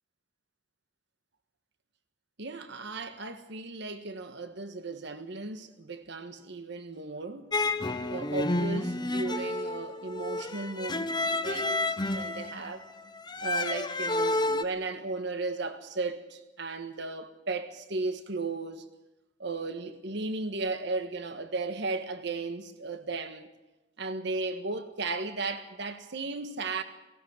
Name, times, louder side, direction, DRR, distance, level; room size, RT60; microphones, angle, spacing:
voice 1, 2.4-7.5 8.1-12.9 13.4-18.8 19.4-23.5 24.0-26.8, right 3 dB, 65° right, 1.6 m, -35 dB
sound 1, 7.5-14.6, left 2 dB, 25° left, 0.8 m, -30 dB
18.0 x 16.0 x 9.5 m
head